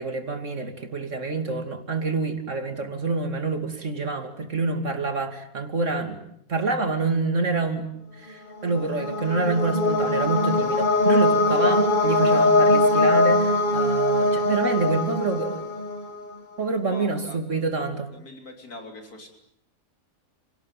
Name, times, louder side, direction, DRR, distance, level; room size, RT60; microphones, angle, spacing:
voice 1, 0.0-6.2 6.5-7.9 8.2-15.8 16.6-18.1, right 3 dB, 55° right, 7 dB, 3.0 m, -27 dB
sound 1, 8.6-16.3, left 2 dB, 30° left, 1.8 m, -21 dB
voice 2, 16.9-17.4 18.3-19.3, left 1 dB, 80° left, 4 dB, 4.1 m, -41 dB
30.0 x 18.5 x 9.2 m, 0.72 s
omnidirectional pair, 1.6 m